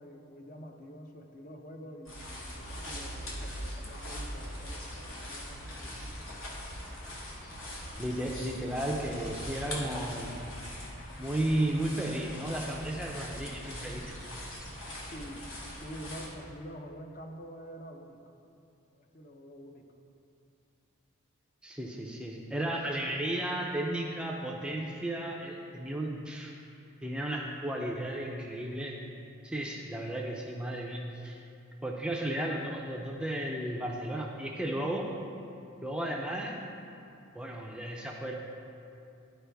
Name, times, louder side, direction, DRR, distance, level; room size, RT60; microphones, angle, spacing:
voice 1, 0.0-6.3 15.1-15.5 15.8-18.3 18.9-19.9, equal, 40° left, 3 dB, 0.6 m, -47 dB
sound 1, 2.0-16.3, equal, 65° left, 1.3 m, -41 dB
voice 2, 8.0-10.3 11.2-14.1 21.6-26.5 27.0-29.0 29.4-31.4 31.8-35.1 35.8-36.6 37.3-38.3, right 1 dB, 5° right, -1 dB, 0.4 m, -34 dB
11.5 x 4.5 x 3.4 m, 2.6 s
head